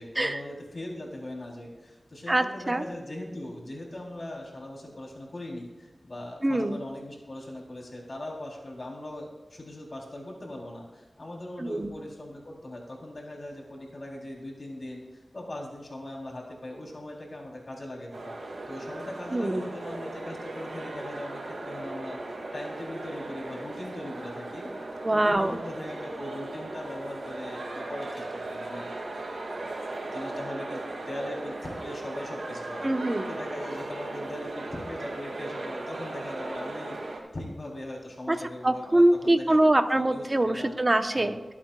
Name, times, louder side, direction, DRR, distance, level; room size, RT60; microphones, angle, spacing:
voice 1, 0.0-15.0 15.3-24.7 25.1-28.9 30.0-32.9 33.3-40.8 41.1-41.3, left 1 dB, 50° left, -2 dB, 3.8 m, -40 dB
voice 2, 2.3-2.8 6.4-6.8 11.6-11.9 19.3-19.6 25.0-25.6 32.8-33.3 38.3-38.4 38.6-41.5, right 1 dB, 30° right, 7 dB, 1.1 m, -24 dB
sound 1, 18.1-37.2, right 2 dB, 85° right, 2.5 m, -37 dB
23.5 x 8.7 x 2.5 m, 1.2 s
cardioid pair, 50°, 0 cm